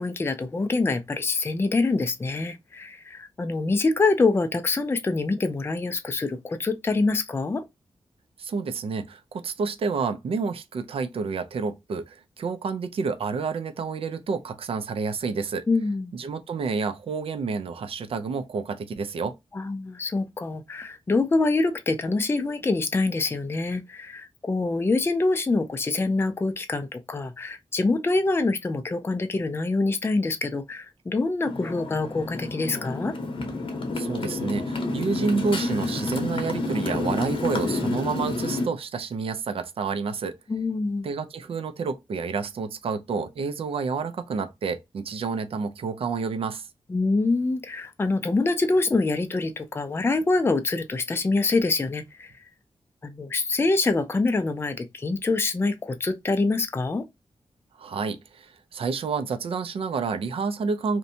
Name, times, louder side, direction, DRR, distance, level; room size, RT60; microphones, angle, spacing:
voice 1, 0.0-7.6 15.7-16.1 19.5-33.2 40.5-41.1 46.9-52.3 53.0-57.0, left 3 dB, 25° left, 0.4 m, -25 dB
voice 2, 8.4-15.7 16.1-19.4 33.9-40.4 41.0-46.7 57.8-61.0, right 5 dB, 65° right, 0.4 m, -29 dB
Motorcycle, 31.4-38.7, left 2 dB, 60° left, 0.7 m, -29 dB
2.6 x 2.1 x 2.6 m
cardioid pair, 80°, 10 cm